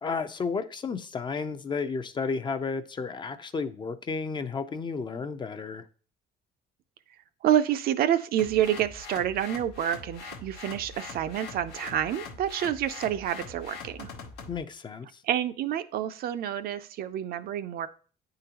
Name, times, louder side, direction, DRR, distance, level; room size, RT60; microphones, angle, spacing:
voice 1, 0.0-5.9 14.5-15.2, left 5 dB, 25° left, 0.4 m, -32 dB
voice 2, 7.4-14.1 15.2-17.9, right 10 dB, 65° right, 0.4 m, -28 dB
sound 1, 8.4-14.6, left 4 dB, 85° left, 0.8 m, -43 dB
9.0 x 3.8 x 2.9 m
cardioid pair, 110°, 17 cm